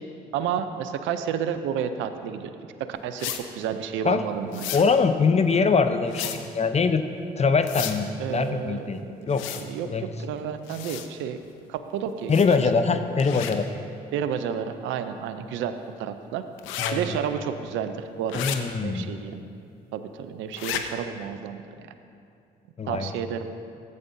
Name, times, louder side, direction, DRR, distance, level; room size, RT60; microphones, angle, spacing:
voice 1, 0.3-2.5 2.8-4.8 8.2-9.3 9.6-11.4 11.7-12.3 14.1-15.7 16.0-16.4 16.9-19.4 19.9-21.9 22.9-23.5, right 8 dB, 75° right, 9 dB, 0.5 m, -31 dB
sound 1, 3.2-3.4 4.5-4.8 6.1-6.4 7.6-8.0 9.3-9.6 10.7-11.1 12.3-12.6 13.2-13.5 16.6-16.9 18.3-18.6 20.5-20.8, left 11 dB, 80° left, 0.6 m, -32 dB
voice 2, 4.7-7.0 7.4-9.0 9.3-9.5 9.8-10.1 12.3-13.7 16.8-17.2 18.3-19.1 22.8-23.1, left 5 dB, 35° left, 9 dB, 0.6 m, -23 dB
14.0 x 8.5 x 2.6 m, 2.5 s
hypercardioid pair, 50°, 20 cm